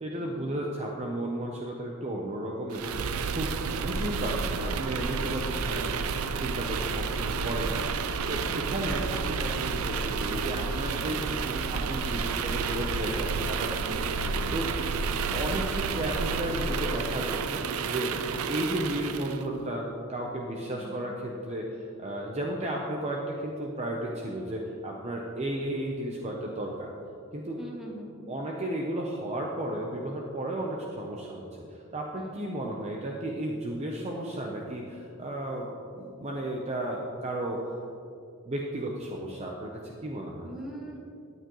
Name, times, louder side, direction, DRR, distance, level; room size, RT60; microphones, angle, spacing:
voice 1, 0.0-3.0 3.3-3.5 3.8-14.1 14.5-14.7 15.3-18.1 18.5-26.9 27.3-27.6 28.3-31.4 31.9-35.7 35.9-37.6 38.4-40.5, right 1 dB, 30° right, -1 dB, 0.8 m, -33 dB
sound 1, 2.7-19.4, right 5 dB, 90° right, 0.5 m, -30 dB
voice 2, 8.3-8.8 11.0-11.2 13.8-14.6 20.8-21.1 27.6-28.1 32.2-32.5 40.4-41.1, right 1 dB, ahead, -5 dB, 1.9 m, -43 dB
13.0 x 9.3 x 3.1 m, 2.6 s
head